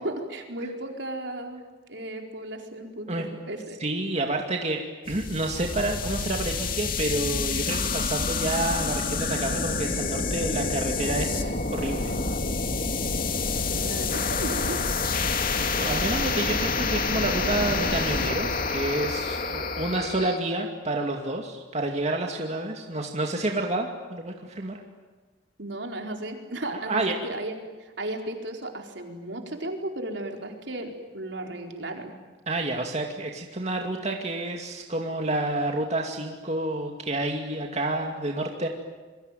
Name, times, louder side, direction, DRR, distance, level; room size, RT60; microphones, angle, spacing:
voice 1, 0.0-1.6 1.9-3.8 13.7-14.8 25.6-32.1, right 1 dB, 70° right, 3 dB, 4.5 m, -35 dB
voice 2, 3.8-4.8 5.1-12.1 15.8-24.8 26.7-27.2 32.5-38.7, right 2 dB, 40° right, 2 dB, 2.4 m, -29 dB
sound 1, 5.1-20.4, left 4 dB, 50° left, 2.4 m, -28 dB
27.5 x 23.5 x 9.3 m, 1.3 s
head